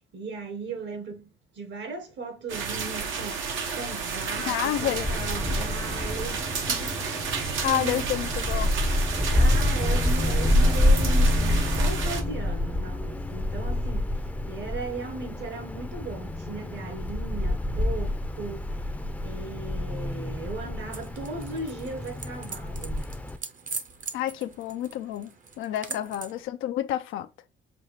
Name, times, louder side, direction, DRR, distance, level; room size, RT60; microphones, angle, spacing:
voice 1, 0.1-1.3 1.5-3.5 3.8-8.1 9.3-14.1 14.5-18.8 19.2-23.1 25.9-26.1, right 3 dB, 65° right, 1.3 m, -37 dB
sound 1, 2.5-12.2, right 5 dB, 80° right, 0.9 m, -32 dB
voice 2, 4.5-5.1 5.5-5.6 7.6-8.7 24.1-25.3 25.6-27.3, left 12 dB, 90° left, 0.4 m, -29 dB
Wind, 4.8-23.4, left 1 dB, 5° left, 0.5 m, -27 dB
sound 2, 20.9-26.4, right 5 dB, 40° right, 0.7 m, -41 dB
5.9 x 2.4 x 3.2 m
cardioid pair, 90°, 20 cm